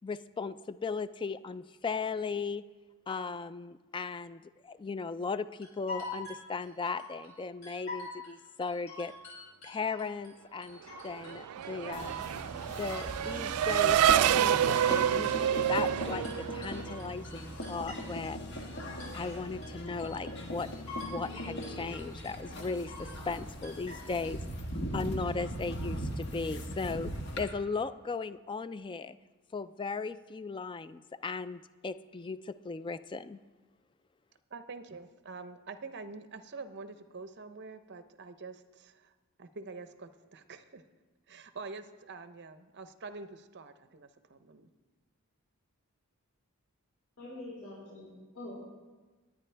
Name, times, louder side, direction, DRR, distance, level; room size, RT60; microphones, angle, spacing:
voice 1, 0.0-2.6 3.1-9.1 9.6-12.2 12.8-16.3 16.5-18.4 19.1-20.7 21.0-24.4 24.9-29.2 29.5-33.4, left 4 dB, 20° left, 14 dB, 0.3 m, -37 dB
sound 1, 5.6-7.3 7.6-8.3 8.6-10.3 10.6-11.4 11.6-15.4 15.6-18.4 18.6-19.4 19.6-20.4 20.6-21.4 21.6-22.3 22.6-23.4 23.6-24.3, left 3 dB, 70° left, 4.9 m, -45 dB
Race car auto racing / Accelerating revving vroom, 11.0-17.1, right 10 dB, 80° right, 0.3 m, -28 dB
sound 2, 11.9-27.4, equal, 50° left, 1.5 m, -39 dB
voice 2, 34.5-39.1 39.4-40.8 41.3-44.7, right 4 dB, 50° right, 10 dB, 0.7 m, -46 dB
voice 3, 47.2-48.7, left 1 dB, 90° left, -8 dB, 4.5 m, -45 dB
20.5 x 9.3 x 3.4 m, 1.3 s
head